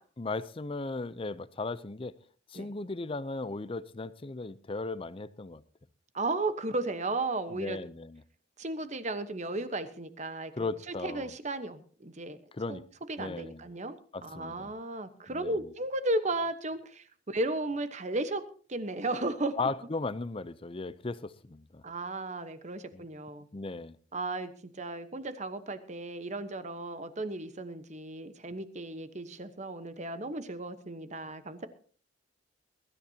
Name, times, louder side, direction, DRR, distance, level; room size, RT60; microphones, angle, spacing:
voice 1, 0.2-2.1 2.5-5.6 7.5-8.2 10.6-11.3 12.5-12.8 13.2-13.6 14.1-14.7 15.3-15.7 19.6-21.8 22.9-23.0 23.5-24.0, left 3 dB, 30° left, 16 dB, 0.5 m, -36 dB
voice 2, 6.1-7.8 8.6-12.4 12.7-12.8 13.1-14.0 14.2-18.4 18.7-19.5 21.8-23.5 24.1-31.7, right 2 dB, 35° right, 11 dB, 1.1 m, -35 dB
22.5 x 13.5 x 2.8 m, 0.43 s
head